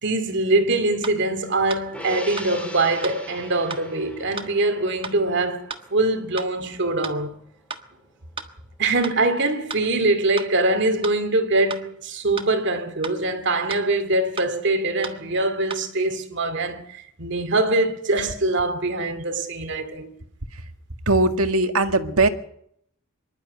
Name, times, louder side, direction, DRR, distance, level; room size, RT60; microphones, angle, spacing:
voice 1, 0.0-7.4 8.8-20.1, right 2 dB, 55° right, 2.4 m, -23 dB
sound 1, 1.0-1.2 1.7-1.8 2.4-2.5 3.0-3.2 3.7-3.8 4.4-4.5 5.0-5.2 5.7-5.8 6.4-6.5 7.0-7.2 7.7-7.8 8.4-8.5 9.0-9.2 9.7-9.8 10.4-10.5 11.0-11.2 11.7-11.8 12.4-12.5 13.0-13.2 13.7-13.8 14.4-14.5 15.0-15.2 15.7-15.8, right 4 dB, 25° right, 1.5 m, -33 dB
Gong, 1.9-8.5 8.9-9.0, left 1 dB, 5° left, 2.7 m, -41 dB
voice 2, 21.0-22.3, right 2 dB, 85° right, 1.8 m, -20 dB
25.0 x 12.0 x 9.5 m
head